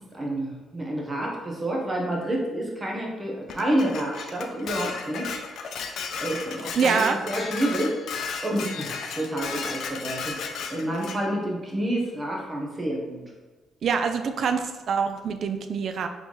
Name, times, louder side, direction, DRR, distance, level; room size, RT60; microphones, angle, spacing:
voice 1, 0.1-5.3 6.2-10.4 10.7-13.2, right 1 dB, 25° right, -1 dB, 1.0 m, -29 dB
Dishes pots and pans, 3.5-11.2, left 5 dB, 70° left, 0.4 m, -34 dB
voice 2, 6.8-7.2 13.8-16.1, right 6 dB, 60° right, 7 dB, 0.3 m, -25 dB
3.9 x 3.5 x 3.2 m, 1.2 s
cardioid pair, 90°, 0 cm